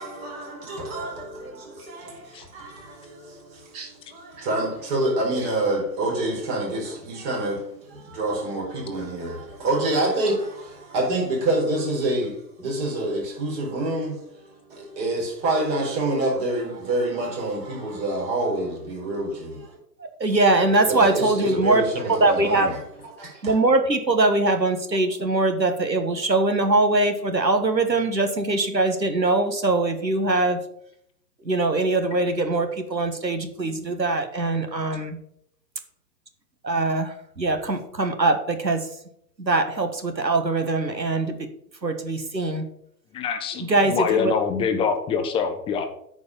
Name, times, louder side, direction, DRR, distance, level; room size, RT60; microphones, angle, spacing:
voice 1, 0.0-19.7 20.3-20.5 20.8-23.6, right 2 dB, 35° right, 4.6 m, -27 dB
voice 2, 20.2-21.8 22.2-22.7 23.4-30.6 31.4-35.2 36.6-38.8 39.4-41.3 41.8-42.7 43.6-44.3, right 2 dB, 90° right, 1.5 m, -22 dB
voice 3, 43.1-45.8, left 6 dB, 10° left, 0.7 m, -25 dB
9.3 x 5.0 x 7.0 m
figure-of-eight pair, 115°, 50 cm